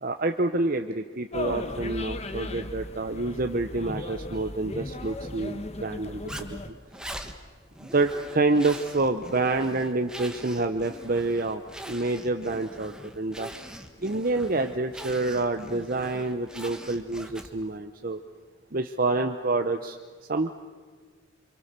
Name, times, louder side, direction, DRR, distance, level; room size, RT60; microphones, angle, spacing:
voice 1, 0.0-6.8 7.8-11.6 11.9-13.5 14.0-18.2 18.7-20.0 20.3-20.5, right 2 dB, 45° right, 6 dB, 0.9 m, -27 dB
sound 1, 1.3-6.7, left 1 dB, 35° left, 1.3 m, -36 dB
Zipper (clothing), 6.3-17.8, right 1 dB, 5° right, 1.4 m, -42 dB
27.5 x 26.0 x 6.8 m, 1.5 s
head